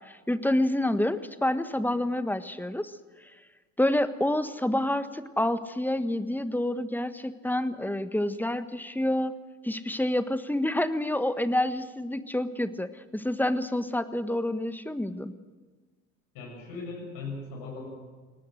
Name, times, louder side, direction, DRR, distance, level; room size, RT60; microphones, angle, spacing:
voice 1, 0.0-2.9 3.8-9.3 9.6-15.3, left 1 dB, 5° left, 12 dB, 1.4 m, -28 dB
voice 2, 16.3-17.9, left 3 dB, 65° left, -1 dB, 7.0 m, -38 dB
22.0 x 19.0 x 6.4 m, 1.4 s
hypercardioid pair, 55°, 39 cm